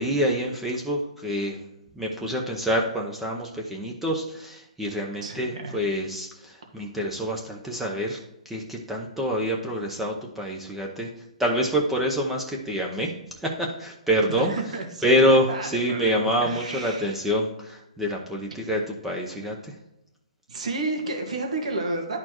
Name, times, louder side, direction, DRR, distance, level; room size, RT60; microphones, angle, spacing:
voice 1, 0.0-1.6 1.9-11.1 11.4-13.1 13.4-14.5 15.0-19.7, equal, 5° right, -1 dB, 0.7 m, -26 dB
voice 2, 5.2-5.8 14.3-17.2 20.5-22.2, right 2 dB, 75° right, 3 dB, 1.7 m, -31 dB
11.5 x 4.3 x 3.0 m, 0.88 s
hypercardioid pair, 150°, 4 cm